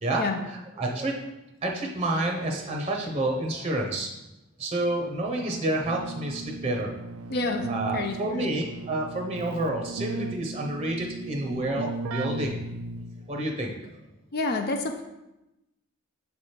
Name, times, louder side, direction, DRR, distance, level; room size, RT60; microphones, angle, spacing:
voice 1, 0.0-1.3 1.6-4.1 4.6-6.9 7.7-12.6 13.3-14.0, right 1 dB, 25° right, 1 dB, 0.7 m, -29 dB
Keyboard (musical), 5.8-13.4, right 3 dB, 70° right, 0.3 m, -37 dB
voice 2, 7.3-7.7 7.9-8.5 14.3-15.0, left 3 dB, 45° left, 5 dB, 0.5 m, -29 dB
6.9 x 3.2 x 4.3 m, 0.95 s
head